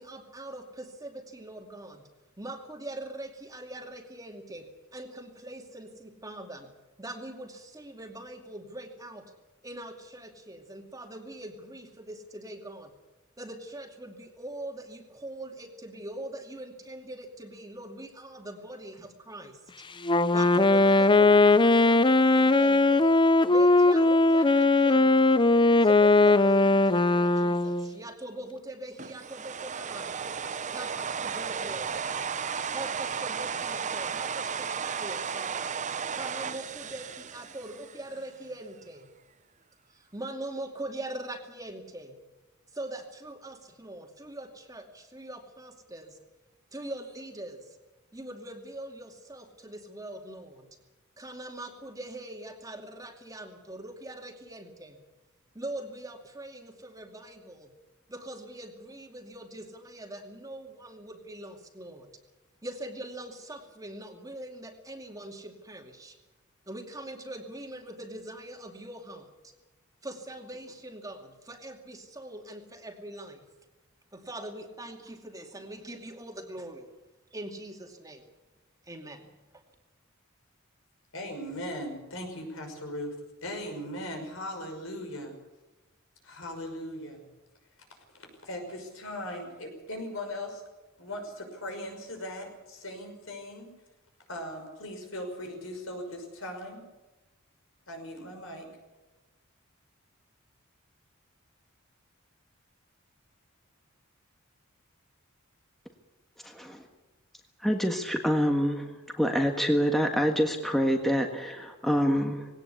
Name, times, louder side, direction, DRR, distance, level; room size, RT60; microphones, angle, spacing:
voice 1, 0.0-2.1 2.4-6.7 7.0-9.3 9.6-13.0 13.4-19.6 20.3-23.1 23.5-25.5 25.8-30.3 30.7-32.1 32.7-35.8 36.1-39.1 39.9-42.2 42.7-46.2 46.7-47.8 48.1-50.8 51.2-55.0 55.5-57.8 58.1-62.2 62.6-66.2 66.7-69.5 70.0-73.5 74.1-76.9 77.3-78.3 78.8-79.6, right 1 dB, 15° right, 3 dB, 2.4 m, -42 dB
Wind instrument woodwind instrument, 20.0-27.9, left 2 dB, 25° left, 0.6 m, -20 dB
sound 1, 29.0-38.2, right 6 dB, 35° right, 0.7 m, -34 dB
voice 2, 81.1-83.1 83.4-85.4 86.2-87.2 88.4-90.6 91.0-93.7 94.3-96.9 97.9-98.7, left 1 dB, 70° left, 4 dB, 6.0 m, -38 dB
voice 3, 106.4-106.8 107.6-108.9 109.2-112.5, equal, ahead, 3 dB, 1.6 m, -26 dB
20.0 x 18.0 x 8.4 m, 1.1 s
head